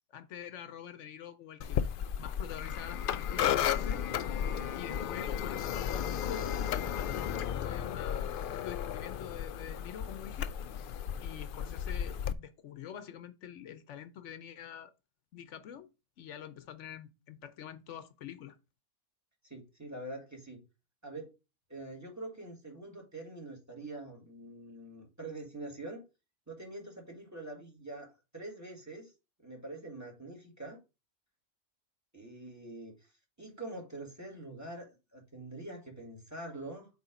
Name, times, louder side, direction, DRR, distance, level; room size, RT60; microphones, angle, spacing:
voice 1, 0.1-1.9 2.2-4.0 4.7-10.5 11.2-14.9 15.3-15.9 16.2-18.6, left 9 dB, 80° left, 1.0 m, -46 dB
sound 1, 1.6-12.3, left 9 dB, 60° left, 0.6 m, -34 dB
voice 2, 19.4-20.6 21.0-21.4 21.7-26.0 26.5-28.1 28.3-29.1 29.4-30.8 32.1-33.0 33.4-36.9, right 2 dB, 15° right, 2.1 m, -45 dB
8.1 x 3.5 x 5.0 m
omnidirectional pair, 1.2 m